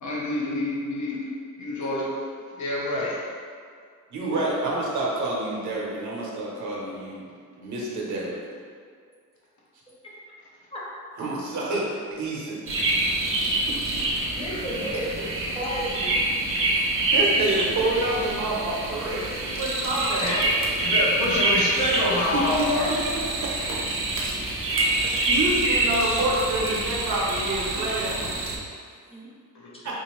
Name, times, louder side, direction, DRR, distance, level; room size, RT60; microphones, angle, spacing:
voice 1, 0.0-1.2 1.6-2.2 2.6-3.2 14.3-14.6 15.6-15.7 16.3-16.9 20.0-20.4 20.8-22.9 29.5-29.7, left 2 dB, 65° left, -5 dB, 0.8 m, -28 dB
voice 2, 4.1-7.2 7.6-8.3 11.2-12.6 12.8-12.9 17.1-20.7 22.1-22.7 25.0-28.4, right 2 dB, 65° right, -4 dB, 0.8 m, -28 dB
sound 1, 12.7-28.6, right 2 dB, 45° right, 0.5 m, -26 dB
voice 3, 14.4-15.3 15.5-16.2 20.1-20.4 29.1-29.3, equal, 20° left, -7 dB, 0.6 m, -32 dB
3.6 x 2.7 x 3.0 m, 2.1 s
wide cardioid pair, 175°, 31 cm